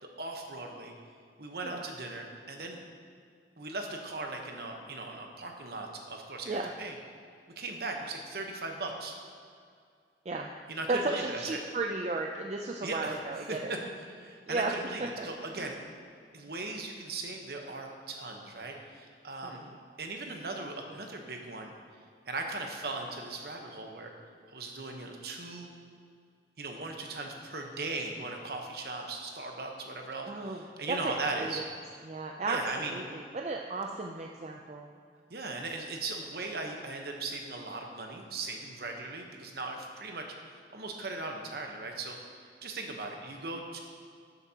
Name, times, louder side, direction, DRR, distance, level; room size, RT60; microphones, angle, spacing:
voice 1, 0.0-0.9 1.4-2.8 3.6-7.0 7.6-9.2 10.7-11.6 12.8-13.2 13.5-15.8 16.3-19.6 20.0-21.7 22.3-24.1 24.5-25.7 26.6-31.6 32.5-33.0 35.3-43.8, right 3 dB, 60° right, 2 dB, 1.0 m, -38 dB
voice 2, 10.9-13.7 14.5-14.7 15.2-15.3 15.6-15.7 19.4-19.7 30.3-30.6 30.9-31.0 31.4-31.5 32.1-32.6 32.9-34.9, right 3 dB, 35° right, 1 dB, 0.4 m, -34 dB
11.5 x 8.1 x 2.9 m, 2.2 s
head